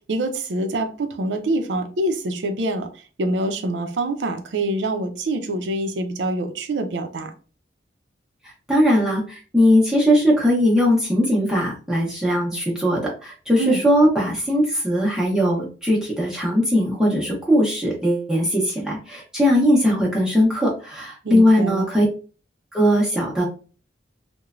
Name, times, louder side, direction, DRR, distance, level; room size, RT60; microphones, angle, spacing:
voice 1, 0.1-2.9 3.2-7.3 13.6-13.8 21.2-21.9, right 1 dB, 75° right, 7 dB, 0.5 m, -25 dB
voice 2, 8.7-22.1 22.7-23.4, equal, 5° right, -5 dB, 0.6 m, -19 dB
3.0 x 2.1 x 2.4 m, 0.36 s
head